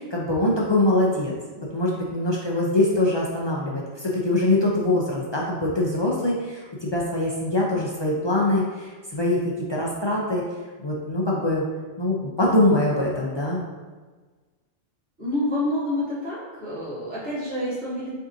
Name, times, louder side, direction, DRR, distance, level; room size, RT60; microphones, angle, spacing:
voice 1, 0.0-1.3 1.7-9.4 9.7-10.4 10.8-11.6 12.0-13.6, left 1 dB, 45° left, -4 dB, 0.3 m, -23 dB
voice 2, 15.2-18.1, left 1 dB, 70° right, -10 dB, 2.0 m, -28 dB
5.9 x 2.6 x 2.6 m, 1.4 s
omnidirectional pair, 1.2 m